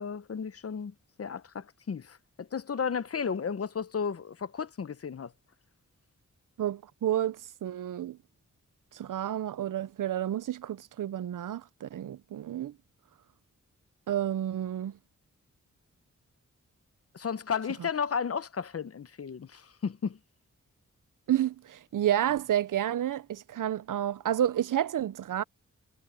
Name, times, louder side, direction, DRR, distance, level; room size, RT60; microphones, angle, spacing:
voice 1, 0.0-5.3 17.1-20.2, left 6 dB, 50° left, 0.7 m, -34 dB
voice 2, 6.6-8.2 8.9-12.7 14.1-14.9 21.3-25.4, right 11 dB, 85° right, 0.5 m, -30 dB
wide cardioid pair, 130°, 31 cm